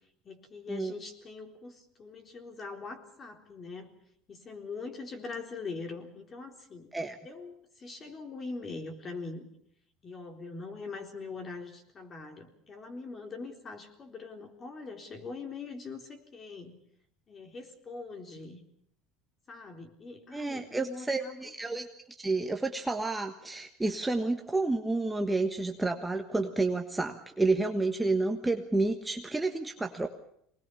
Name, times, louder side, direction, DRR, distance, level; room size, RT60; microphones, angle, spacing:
voice 1, 0.2-4.0 4.3-6.9 7.2-9.5 10.0-16.8 17.3-18.6 19.5-21.5, left 4 dB, 30° left, 5 dB, 4.0 m, -42 dB
voice 2, 20.3-21.9 22.2-30.1, right 3 dB, 10° right, 4 dB, 1.4 m, -30 dB
24.5 x 20.0 x 7.0 m, 0.70 s
supercardioid pair, 125°, 0 cm